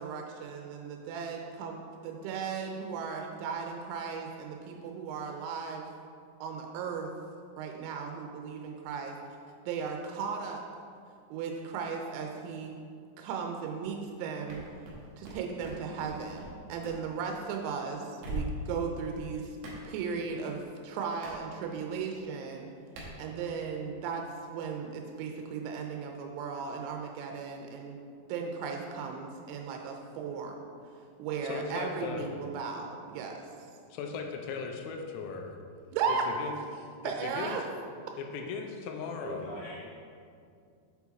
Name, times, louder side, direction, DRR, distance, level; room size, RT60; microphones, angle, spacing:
voice 1, 0.0-5.9 6.4-7.1 7.6-9.2 9.7-10.6 11.3-12.8 13.2-14.6 15.2-19.6 19.8-22.7 23.2-24.2 24.5-28.0 28.3-30.6 31.2-33.4 35.9-36.2 37.0-37.6, right 6 dB, 90° right, 2 dB, 3.3 m, -36 dB
sound 1, 14.5-16.5 16.8-17.0 18.2-18.8 19.6-19.8 21.2-21.4 23.0-23.1, right 1 dB, 70° right, 2.5 m, -39 dB
voice 2, 31.4-32.3 33.9-35.6 36.1-36.5 37.0-37.7 38.2-39.6, left 5 dB, 85° left, 3 dB, 3.3 m, -38 dB
voice 3, 39.2-39.8, right 1 dB, 65° left, -8 dB, 3.0 m, -42 dB
8.3 x 4.7 x 4.0 m, 2.3 s
omnidirectional pair, 6.0 m